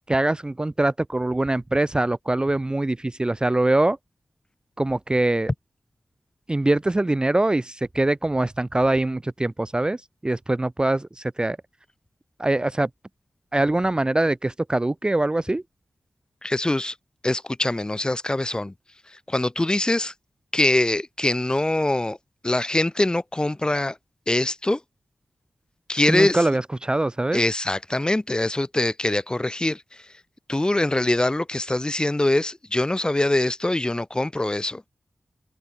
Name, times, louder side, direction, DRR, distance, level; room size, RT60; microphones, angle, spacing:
voice 1, 0.1-4.0 4.8-5.5 6.5-11.6 12.4-12.9 13.5-15.6 26.1-27.4, right 2 dB, 20° right, 0.5 m, -23 dB
voice 2, 16.4-16.9 17.2-18.7 19.3-20.1 20.5-22.2 22.4-24.0 24.3-24.8 25.9-26.4 27.3-29.8 30.5-34.8, left 1 dB, 20° left, 0.8 m, -23 dB
wide cardioid pair, 95°, 4 cm